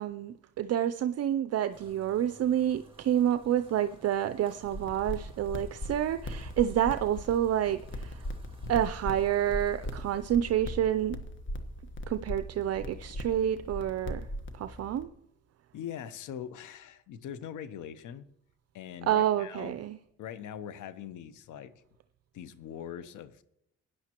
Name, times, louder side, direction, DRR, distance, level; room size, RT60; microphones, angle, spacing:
voice 1, 0.0-8.2 8.7-11.2 12.1-14.3 14.5-15.1 19.0-20.0, right 10 dB, 55° right, 10 dB, 0.5 m, -28 dB
sound 1, 1.7-10.3, right 2 dB, 15° right, 1.9 m, -57 dB
sound 2, 4.6-15.0, left 1 dB, 40° left, 1.2 m, -39 dB
voice 2, 15.7-18.3 18.7-19.8 20.2-21.7 22.3-23.4, left 9 dB, 80° left, 14 dB, 0.8 m, -42 dB
16.0 x 10.0 x 3.0 m, 0.80 s
cardioid pair, 90°, 30 cm